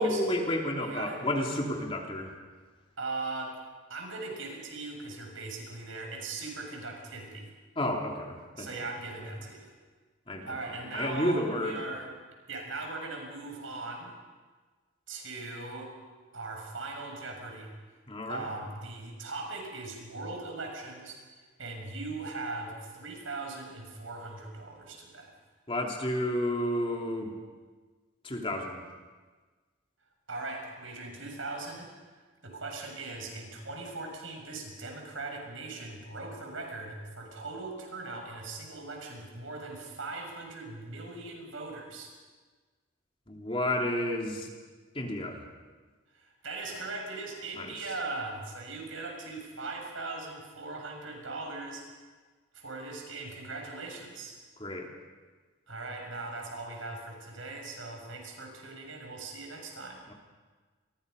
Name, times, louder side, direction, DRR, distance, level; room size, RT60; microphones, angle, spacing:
voice 1, 0.0-2.3 7.8-8.7 10.3-10.5 10.9-11.8 18.1-18.5 25.7-27.3 28.2-28.8 43.3-44.5 44.9-45.4 47.6-47.7 54.6-54.9 60.1-60.2, left 1 dB, 25° left, 1 dB, 3.0 m, -31 dB
voice 2, 0.8-1.2 3.0-3.5 3.9-7.5 8.6-9.7 10.5-12.1 12.5-14.1 15.1-15.9 16.3-17.7 18.3-25.3 30.3-42.1 46.1-51.9 52.5-54.4 55.7-60.0, right 3 dB, 90° right, 2 dB, 6.7 m, -39 dB
29.0 x 22.5 x 5.4 m, 1.4 s
head